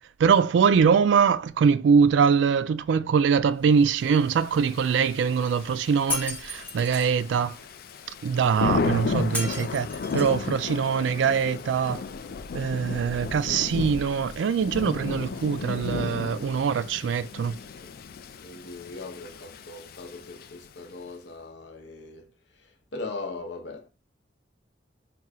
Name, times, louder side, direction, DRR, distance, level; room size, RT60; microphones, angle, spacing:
voice 1, 0.2-7.6 8.2-9.9 10.1-12.0 12.5-17.6, right 6 dB, 70° right, 0.3 m, -23 dB
Thunder / Rain, 4.3-20.9, left 4 dB, 50° left, 0.3 m, -34 dB
Shatter, 6.1-7.1 9.3-10.4, left 2 dB, 10° left, 0.7 m, -33 dB
voice 2, 17.4-17.9 18.4-23.9, left 3 dB, 65° left, 0.7 m, -40 dB
4.2 x 2.3 x 3.6 m
head